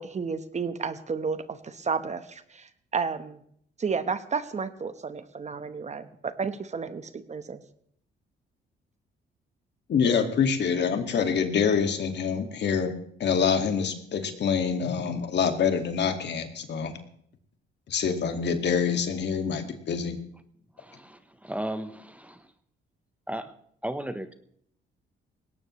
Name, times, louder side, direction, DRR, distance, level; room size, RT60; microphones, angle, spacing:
voice 1, 0.0-3.4 3.8-7.6, right 5 dB, 35° right, 10 dB, 1.2 m, -32 dB
voice 2, 9.9-12.9 13.2-16.9 17.9-20.2, left 6 dB, 60° left, 6 dB, 2.0 m, -26 dB
voice 3, 20.8-22.5 23.3-23.5 23.8-24.3, right 1 dB, 5° right, 10 dB, 1.0 m, -35 dB
19.5 x 17.5 x 3.2 m, 0.66 s
cardioid pair, 90°, 20 cm